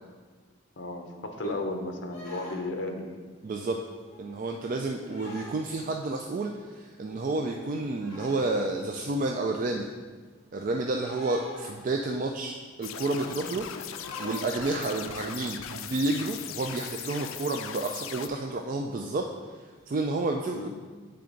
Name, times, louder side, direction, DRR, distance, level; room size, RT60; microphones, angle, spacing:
voice 1, 0.8-3.1 20.5-20.7, left 2 dB, 60° left, 4 dB, 0.8 m, -34 dB
sound 1, 2.1-2.9 3.4-3.7 4.1-4.4 5.1-5.6 6.3-6.4 6.6-6.7 7.0-7.4 8.0-8.6 9.3-9.4 11.0-12.1 12.4-12.5 13.9-15.0 15.6-15.7 15.9-16.1 17.1-17.3 18.2-18.4 18.9-19.0 19.7-19.9, left 2 dB, 35° left, 1.8 m, -45 dB
voice 2, 3.4-3.8 4.2-9.9 10.5-19.2 19.5-20.7, right 2 dB, 40° right, 2 dB, 0.3 m, -30 dB
sound 2, 12.8-18.3, left 9 dB, 85° left, 0.4 m, -39 dB
8.7 x 3.4 x 3.8 m, 1.4 s
head